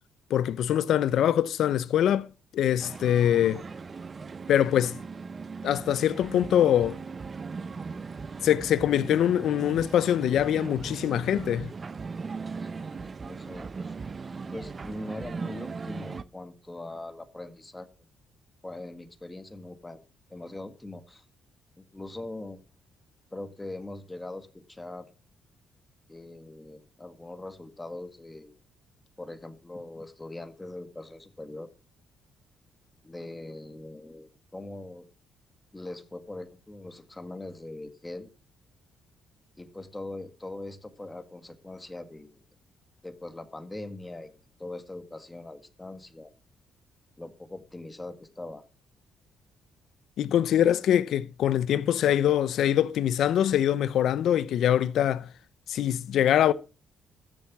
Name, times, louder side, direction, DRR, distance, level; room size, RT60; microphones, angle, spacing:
voice 1, 0.3-3.6 4.5-5.0 5.6-7.0 8.4-11.7 50.2-55.3 55.7-56.5, left 10 dB, 75° left, 0.7 m, -24 dB
sound 1, 2.8-16.2, right 4 dB, 35° right, 0.7 m, -38 dB
voice 2, 12.6-13.7 14.5-17.9 18.6-20.0 20.3-21.2 21.8-22.6 23.3-25.1 26.1-28.5 29.2-31.7 33.0-35.0 35.7-38.3 39.6-42.4 43.0-44.3 44.6-46.3 47.2-48.6, left 2 dB, 15° left, 1.8 m, -41 dB
13.5 x 7.4 x 6.1 m
cardioid pair, 90°, 0 cm